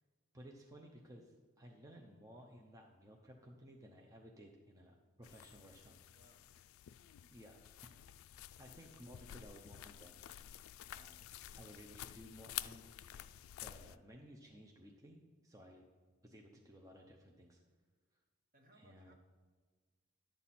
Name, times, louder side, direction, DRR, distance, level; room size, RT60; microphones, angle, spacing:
voice 1, 0.3-6.0 7.3-7.6 8.6-10.1 10.9-13.1 13.6-15.9 16.2-17.6 18.7-19.1, equal, 15° right, 0 dB, 0.7 m, -57 dB
sound 1, 5.2-14.0, left 12 dB, 80° left, 0.3 m, -51 dB
voice 2, 6.1-6.5 11.5-11.7 18.5-19.1, right 1 dB, 40° right, 4 dB, 1.0 m, -67 dB
11.5 x 7.5 x 4.2 m, 1.5 s
head